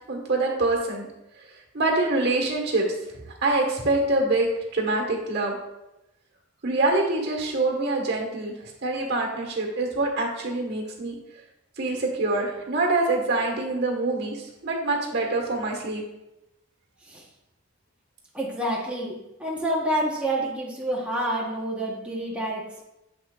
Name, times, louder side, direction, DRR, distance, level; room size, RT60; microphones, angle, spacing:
voice 1, 0.1-1.1 1.7-5.6 6.6-11.2 11.8-16.0 21.1-21.2, right 2 dB, 55° right, 1 dB, 1.5 m, -25 dB
voice 2, 18.3-22.8, right 1 dB, 5° right, -4 dB, 1.1 m, -28 dB
7.3 x 6.0 x 2.4 m, 0.92 s
head